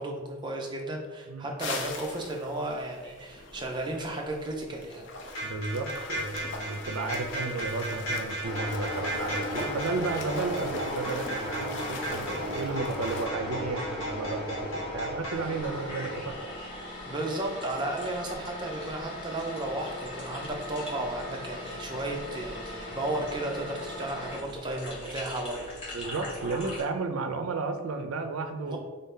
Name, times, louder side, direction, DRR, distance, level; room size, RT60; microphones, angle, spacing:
voice 1, 0.0-5.1 17.1-25.7 28.6-28.8, right 1 dB, 20° right, 0 dB, 0.5 m, -34 dB
sound 1, 1.6-13.3, left 2 dB, 55° left, 0.5 m, -42 dB
sound 2, 5.3-15.3, right 1 dB, 80° left, 1.3 m, -36 dB
voice 2, 5.4-16.4 25.9-28.8, right 3 dB, 80° right, 7 dB, 0.4 m, -33 dB
sound 3, 8.4-26.8, left 1 dB, 25° left, 1.2 m, -38 dB
3.8 x 2.7 x 3.6 m, 1.3 s
head